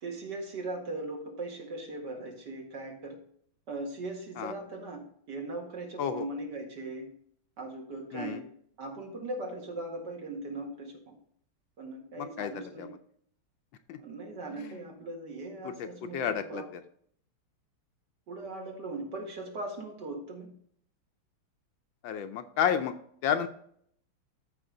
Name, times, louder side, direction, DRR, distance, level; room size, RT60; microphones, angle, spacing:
voice 1, 0.0-3.2 3.7-7.1 7.6-8.5 8.8-11.1 11.8-12.9 14.0-16.7 18.3-20.5, right 2 dB, 55° right, 1 dB, 2.4 m, -39 dB
voice 2, 12.2-12.5 12.8-12.9 13.9-14.0 14.6-14.8 16.1-16.6 22.0-22.9 23.2-23.5, left 8 dB, 70° left, 8 dB, 1.3 m, -30 dB
13.0 x 5.2 x 3.8 m, 0.64 s
omnidirectional pair, 2.3 m